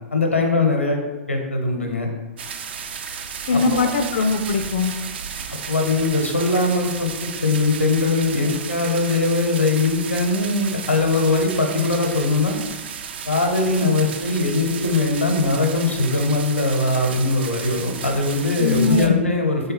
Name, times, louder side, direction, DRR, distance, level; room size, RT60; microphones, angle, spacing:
voice 1, 0.1-1.0 1.3-2.1 3.5-3.6 5.7-12.6 13.2-19.7, left 3 dB, 85° left, 2 dB, 0.7 m, -21 dB
sound 1, 2.4-19.1, right 7 dB, 55° right, 0.3 m, -33 dB
voice 2, 3.5-4.9 13.8-13.9 18.6-19.2, left 4 dB, 45° left, 3 dB, 0.3 m, -21 dB
3.9 x 3.5 x 2.9 m, 1.2 s
figure-of-eight pair, 105°, 7 cm